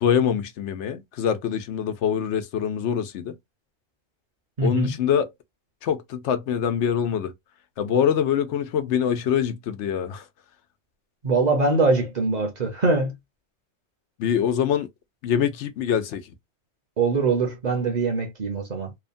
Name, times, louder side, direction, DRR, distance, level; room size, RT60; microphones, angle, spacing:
voice 1, 0.0-3.3 4.6-5.3 5.8-7.3 7.8-10.2 14.2-14.9 15.2-16.2, left 8 dB, 90° left, 0.9 m, -24 dB
voice 2, 4.6-4.9 11.2-13.2 17.0-18.9, right 3 dB, 45° right, 0.8 m, -23 dB
3.0 x 2.1 x 2.5 m
omnidirectional pair, 1.1 m